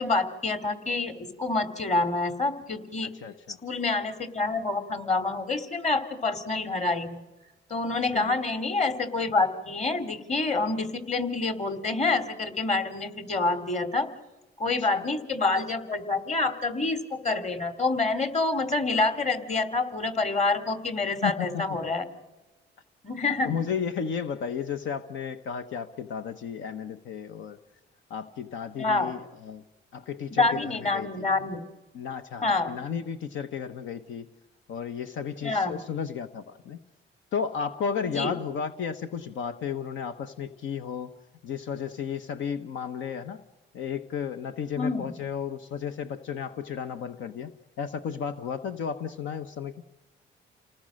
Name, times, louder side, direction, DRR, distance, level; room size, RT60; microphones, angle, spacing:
voice 1, 0.0-3.1 3.6-7.2 7.7-14.1 14.6-22.1 23.0-23.5 28.8-29.1 30.3-31.6 32.4-32.8 35.4-35.8 38.1-38.3 44.8-45.1, left 3 dB, 35° left, 9 dB, 3.1 m, -27 dB
voice 2, 3.1-3.6 8.1-8.4 14.8-15.0 21.2-21.6 23.4-27.6 28.1-29.6 29.9-31.3 31.9-34.3 34.7-36.8 37.3-41.2 41.4-43.4 43.7-47.5 47.8-49.7, left 7 dB, 75° left, 9 dB, 1.1 m, -33 dB
29.0 x 19.0 x 6.4 m, 1.1 s
cardioid pair, 90°, 20 cm